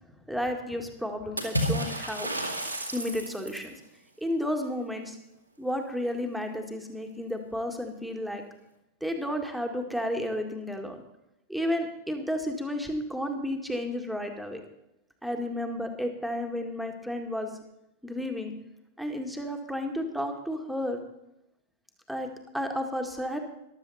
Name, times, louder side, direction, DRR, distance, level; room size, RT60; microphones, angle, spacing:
voice 1, 0.3-2.3 2.9-3.7 4.2-5.2 5.6-8.4 9.0-11.0 11.5-14.6 15.2-17.5 18.0-18.5 19.0-21.0 22.1-22.3 22.5-23.4, equal, ahead, 4 dB, 2.0 m, -32 dB
Water / Splash splatter, 1.4-3.7, equal, 90° right, 2.3 m, -31 dB
15.0 x 12.0 x 4.2 m, 0.86 s
figure-of-eight pair, 90°, 0 cm